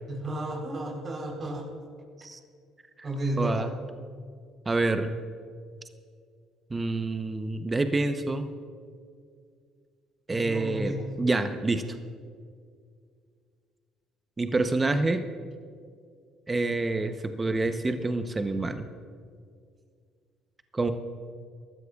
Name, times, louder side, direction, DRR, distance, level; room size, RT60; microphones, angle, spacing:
voice 1, 0.1-1.7 3.0-3.7 10.3-11.2, right 1 dB, 45° right, 0 dB, 3.9 m, -32 dB
voice 2, 3.4-3.7 4.7-5.2 6.7-8.5 10.3-11.8 14.4-15.3 16.5-18.9 20.7-20.9, right 2 dB, 25° right, 8 dB, 0.9 m, -27 dB
22.5 x 13.0 x 2.4 m, 2.1 s
hypercardioid pair, 60°, 0 cm